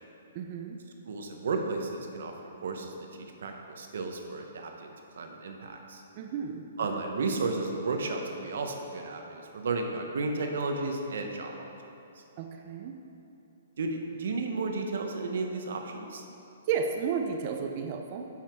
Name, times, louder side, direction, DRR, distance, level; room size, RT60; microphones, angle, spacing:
voice 1, 0.3-0.8 6.2-6.9 12.4-13.0 16.7-18.3, right 6 dB, 35° right, 4 dB, 0.5 m, -33 dB
voice 2, 1.0-2.3 2.6-6.0 6.8-11.7 13.8-16.2, right 3 dB, 70° right, 3 dB, 1.0 m, -33 dB
9.3 x 5.7 x 4.6 m, 2.9 s
hypercardioid pair, 165°, 0 cm